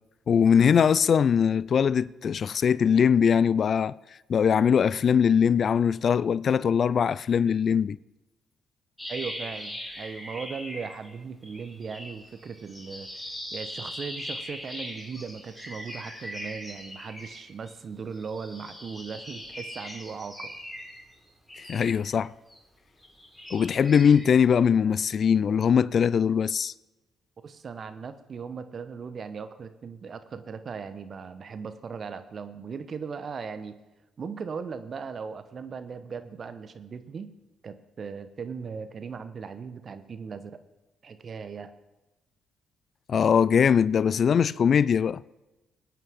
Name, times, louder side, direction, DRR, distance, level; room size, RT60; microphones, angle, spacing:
voice 1, 0.3-3.9 4.3-8.0 21.7-22.3 23.5-26.7 43.1-45.2, left 7 dB, 55° left, 0.4 m, -21 dB
sound 1, 9.0-11.2 11.4-17.7 18.1-22.6 23.0-24.3, equal, 5° left, 3.7 m, -40 dB
voice 2, 9.1-13.1 13.5-20.5 27.4-33.8 34.2-37.3 37.6-40.6 41.0-41.7, right 5 dB, 50° right, 1.1 m, -38 dB
21.0 x 9.2 x 3.7 m
hypercardioid pair, 45°, 0 cm